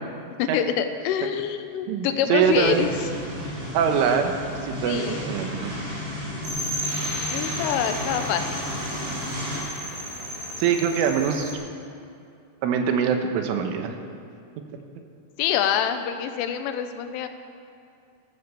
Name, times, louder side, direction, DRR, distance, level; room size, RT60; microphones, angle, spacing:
voice 1, 0.4-2.9 4.8-5.2 7.3-8.6 15.4-17.3, left 9 dB, 85° left, 8 dB, 3.5 m, -26 dB
voice 2, 1.9-2.9 3.4-3.5 3.7-4.3 4.6-5.7 10.6-11.5 12.6-13.9, right 7 dB, 85° right, 5 dB, 3.7 m, -23 dB
sound 1, 2.4-9.6, equal, 50° right, 7.1 m, -33 dB
sound 2, 6.4-11.5, equal, 25° right, 4.2 m, -33 dB
15.0 x 13.5 x 6.9 m, 2.5 s
omnidirectional pair, 5.6 m